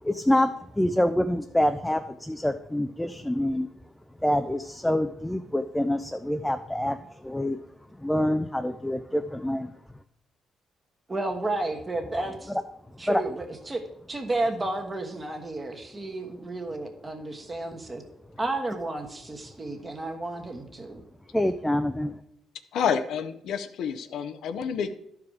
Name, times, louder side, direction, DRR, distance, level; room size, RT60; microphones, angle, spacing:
voice 1, 0.0-3.7 4.2-7.6 7.9-9.7 12.5-12.6 13.1-13.2 21.3-22.2, left 1 dB, 5° left, 8 dB, 0.4 m, -26 dB
voice 2, 11.1-12.5 13.0-13.8 14.1-18.0 18.4-21.0, right 2 dB, 25° right, 3 dB, 1.3 m, -32 dB
voice 3, 22.7-24.9, left 7 dB, 75° left, 9 dB, 0.6 m, -29 dB
11.5 x 4.8 x 4.8 m, 0.78 s
cardioid pair, 90°, 0 cm